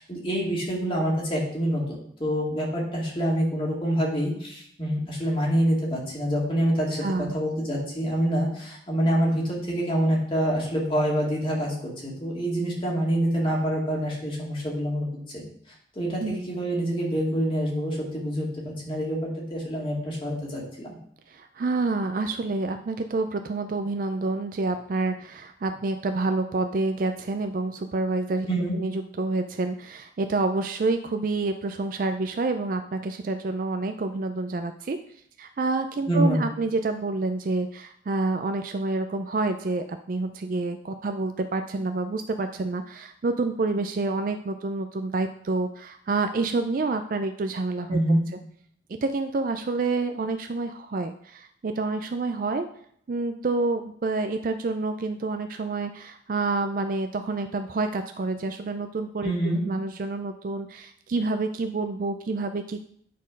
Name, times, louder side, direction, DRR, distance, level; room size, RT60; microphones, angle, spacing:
voice 1, 0.0-1.8 2.2-7.1 7.3-15.4 16.0-21.0 28.5-28.7 36.1-36.4 47.9-48.2 59.2-59.6, equal, 30° left, -3 dB, 2.2 m, -26 dB
voice 2, 7.0-7.3 16.2-16.4 21.3-28.5 28.7-35.0 35.4-48.0 48.9-52.7 53.1-59.3 59.7-62.8, right 3 dB, 50° right, 7 dB, 0.4 m, -28 dB
9.3 x 4.3 x 5.2 m, 0.67 s
head